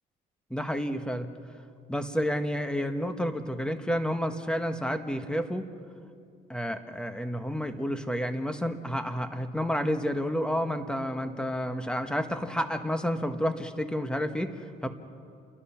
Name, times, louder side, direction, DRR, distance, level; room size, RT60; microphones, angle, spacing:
voice 1, 0.5-1.3 1.9-5.7 6.5-14.9, equal, 5° left, 7 dB, 1.3 m, -30 dB
28.5 x 22.5 x 5.9 m, 2.4 s
cardioid pair, 110°, 17 cm